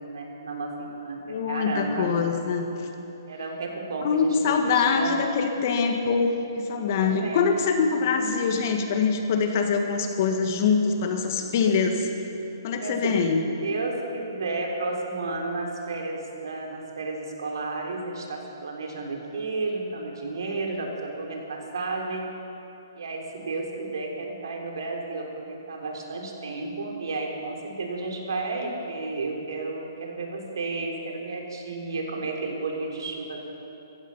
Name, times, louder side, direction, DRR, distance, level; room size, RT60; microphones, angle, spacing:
voice 1, 0.0-2.1 3.3-5.2 7.0-7.4 12.7-13.2 13.6-22.3 22.9-33.4, right 3 dB, 80° right, 1 dB, 3.5 m, -32 dB
voice 2, 1.3-2.7 4.0-12.1 12.6-13.4, left 5 dB, 45° left, 5 dB, 1.7 m, -24 dB
16.0 x 15.0 x 5.7 m, 2.9 s
hypercardioid pair, 155°, 2 cm